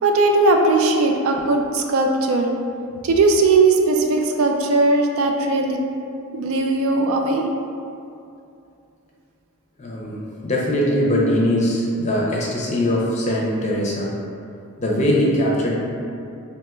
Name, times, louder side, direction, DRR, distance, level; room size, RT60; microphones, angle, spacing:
voice 1, 0.0-2.5 3.0-5.8 6.3-7.4, right 3 dB, 70° right, 3 dB, 0.3 m, -18 dB
voice 2, 9.8-14.1 14.8-15.8, equal, 30° left, -4 dB, 0.5 m, -21 dB
4.3 x 2.8 x 2.3 m, 2.6 s
head